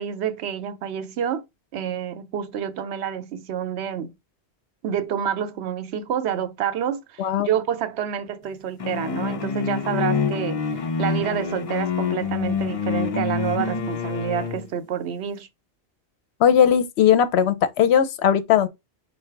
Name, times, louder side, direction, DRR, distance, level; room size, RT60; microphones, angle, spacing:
voice 1, 0.0-1.4 1.7-4.1 4.8-15.5, right 9 dB, 80° right, 0.9 m, -28 dB
sound 1, 8.8-14.7, left 5 dB, 50° left, 0.4 m, -26 dB
voice 2, 16.4-18.7, left 9 dB, 75° left, 0.8 m, -18 dB
4.7 x 2.2 x 4.5 m
omnidirectional pair, 1.1 m